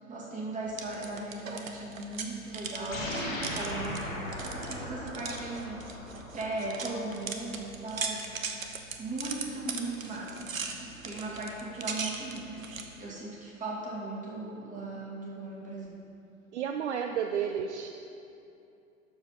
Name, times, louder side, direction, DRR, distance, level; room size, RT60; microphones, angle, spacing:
voice 1, 0.1-3.1 3.5-5.9 6.3-8.2 9.0-16.0, right 2 dB, 20° right, -5 dB, 2.4 m, -38 dB
sound 1, 0.7-12.9, right 5 dB, 75° right, 1.0 m, -39 dB
sound 2, 2.9-7.6, left 1 dB, 70° left, 1.9 m, -38 dB
voice 2, 16.5-17.9, right 8 dB, 55° right, 5 dB, 0.6 m, -31 dB
12.5 x 4.8 x 5.6 m, 2.7 s
figure-of-eight pair, 100°, 41 cm